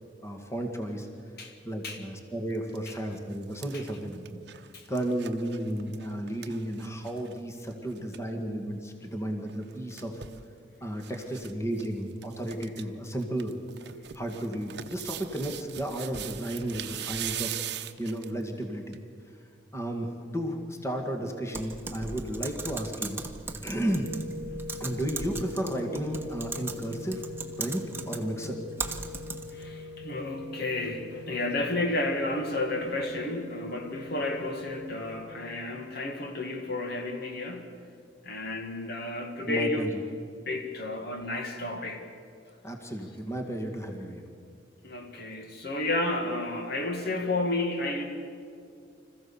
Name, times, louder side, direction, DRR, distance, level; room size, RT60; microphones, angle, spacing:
voice 1, 0.2-1.1 1.6-4.4 4.9-10.2 10.8-13.6 14.1-17.6 18.0-19.0 19.7-23.3 23.6-24.1 24.8-27.2 27.6-28.6 39.5-39.9 42.6-44.2, right 1 dB, 15° left, 3 dB, 1.9 m, -33 dB
sound 1, 2.5-2.8 3.2-7.4 7.7-7.8 8.0-8.2 9.5-10.4 11.0-11.5 11.8-11.9 12.2-12.8 13.2-18.4 18.9-19.0, right 11 dB, 65° right, 0.8 m, -40 dB
Typing, 21.5-29.7, right 3 dB, 15° right, 1.2 m, -38 dB
sound 2, 23.8-35.2, left 2 dB, 75° left, 4.1 m, -42 dB
voice 2, 29.5-37.7 38.2-39.9 40.5-42.0 44.8-48.0, left 2 dB, 60° left, 4 dB, 2.0 m, -31 dB
26.0 x 15.0 x 7.1 m, 2.3 s
head